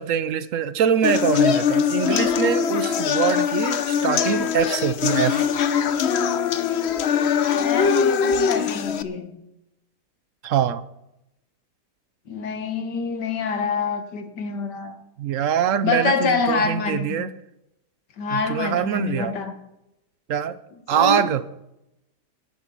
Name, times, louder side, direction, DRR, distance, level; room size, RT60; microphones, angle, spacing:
voice 1, 0.0-5.5 10.4-10.8 15.2-17.3 18.3-19.3 20.3-20.6 20.9-21.4, right 8 dB, 60° right, 0.9 m, -23 dB
sound 1, 1.0-9.0, left 7 dB, 55° left, 0.7 m, -22 dB
voice 2, 7.5-9.4 12.3-15.0 15.8-17.2 18.2-19.5 20.9-21.3, left 5 dB, 80° left, 2.0 m, -26 dB
13.0 x 10.0 x 6.0 m
omnidirectional pair, 1.8 m